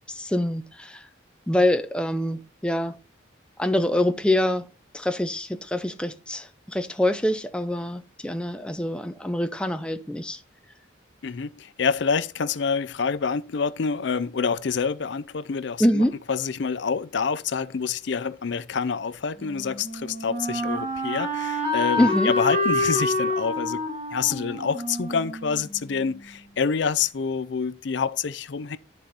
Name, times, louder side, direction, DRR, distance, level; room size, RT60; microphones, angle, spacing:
voice 1, 0.1-1.1 1.5-3.0 3.6-4.7 4.9-10.4 15.8-16.1 22.0-22.3, left 1 dB, 5° left, 0.4 m, -25 dB
voice 2, 11.2-23.8 24.1-28.8, left 5 dB, 60° left, 0.5 m, -27 dB
Wind instrument woodwind instrument, 19.4-26.2, left 1 dB, 35° right, 2.8 m, -28 dB
10.5 x 4.3 x 4.0 m
head